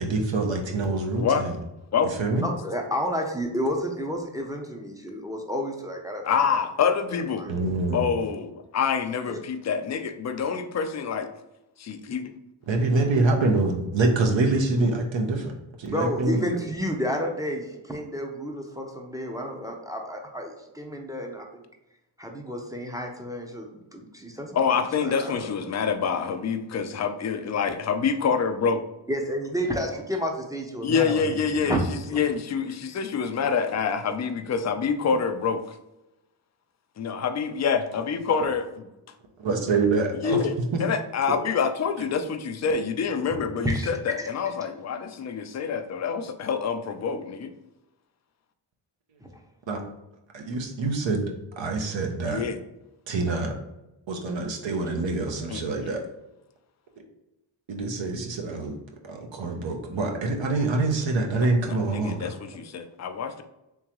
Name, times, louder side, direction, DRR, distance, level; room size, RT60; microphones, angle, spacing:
voice 1, 0.0-1.6 2.2-2.5 7.5-8.1 12.7-15.5 15.8-16.5 39.4-40.4 40.7-40.8 41.3-41.4 49.7-49.8 50.3-51.3 51.6-52.4 53.1-53.5 54.1-56.0 57.7-58.8 59.1-62.3, right 3 dB, 65° right, 2 dB, 0.8 m, -25 dB
voice 2, 2.4-6.7 7.1-7.5 9.3-9.4 15.9-21.6 22.2-25.5 29.1-31.8 32.1-32.2 43.3-43.4 43.6-43.9 44.2-44.3 49.2-49.3, equal, 5° right, 1 dB, 0.6 m, -31 dB
voice 3, 6.2-7.4 7.9-11.3 11.8-12.3 24.5-28.8 30.8-31.8 32.1-35.8 37.0-38.6 40.2-40.5 40.8-47.5 52.3-52.6 55.5-55.6 61.4-63.4, left 6 dB, 35° left, 8 dB, 0.4 m, -26 dB
3.7 x 2.9 x 3.0 m, 0.93 s
cardioid pair, 60°, 49 cm